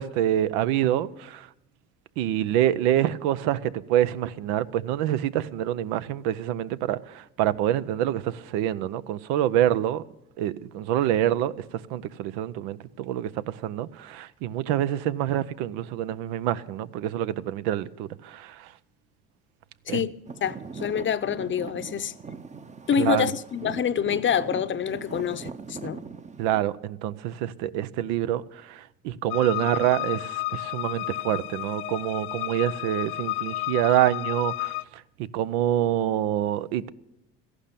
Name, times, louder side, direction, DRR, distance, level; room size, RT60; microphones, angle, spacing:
voice 1, 0.0-1.5 2.2-10.0 10.4-18.7 19.9-20.1 23.0-23.3 26.4-34.7 35.3-36.9, right 12 dB, 85° right, 0.7 m, -26 dB
Traffic noise roadway noise / Engine, 20.2-26.6, right 5 dB, 20° right, 0.7 m, -40 dB
voice 2, 20.4-22.1 22.9-26.0, left 8 dB, 35° left, 0.7 m, -26 dB
sound 1, 29.3-34.8, left 19 dB, 85° left, 0.5 m, -32 dB
13.5 x 11.5 x 6.8 m
supercardioid pair, 85°, 33 cm